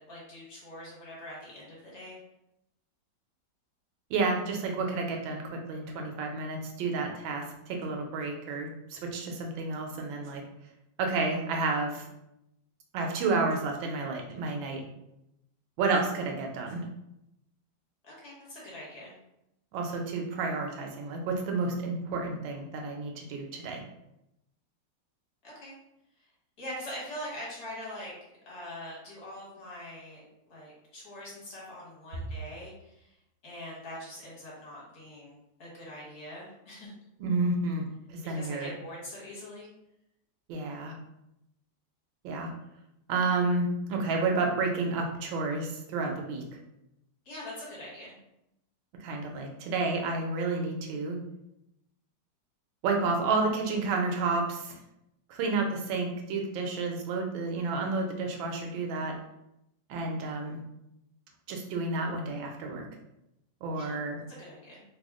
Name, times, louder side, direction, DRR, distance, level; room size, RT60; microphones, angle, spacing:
voice 1, 0.0-2.2 18.0-19.1 25.4-25.7 26.6-28.1 28.5-33.1 33.4-36.9 38.2-39.7 47.2-48.1 63.7-64.0 64.3-64.8, left 1 dB, 55° left, -5 dB, 1.6 m, -43 dB
voice 2, 4.1-10.4 11.0-12.1 12.9-14.8 15.8-16.8 19.7-23.8 37.2-38.7 40.5-40.9 42.2-42.5 43.1-46.4 49.0-51.2 52.8-54.8 55.3-59.1 59.9-60.6 61.5-62.8 63.6-64.2, right 3 dB, 90° right, 1 dB, 1.4 m, -30 dB
3.4 x 2.0 x 3.6 m, 0.84 s
omnidirectional pair, 2.0 m